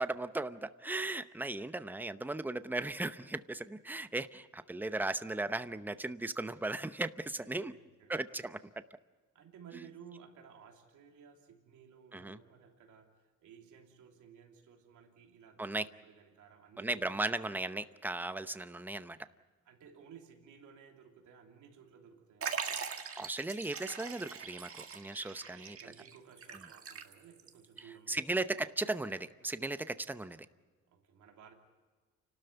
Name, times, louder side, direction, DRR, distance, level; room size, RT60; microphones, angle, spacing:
voice 1, 0.0-7.7 8.1-8.6 12.1-12.4 15.6-15.9 16.8-19.2 23.2-25.8 28.1-30.4, right 2 dB, 5° right, 12 dB, 0.8 m, -36 dB
voice 2, 7.4-8.2 9.3-17.3 19.6-22.8 25.3-28.5 30.9-31.5, right 7 dB, 80° right, 2 dB, 3.0 m, -57 dB
Liquid, 22.4-27.5 27.8-27.9 28.8-28.9, right 6 dB, 50° right, 1.8 m, -42 dB
29.0 x 13.0 x 9.3 m, 1.4 s
cardioid pair, 90°, 30 cm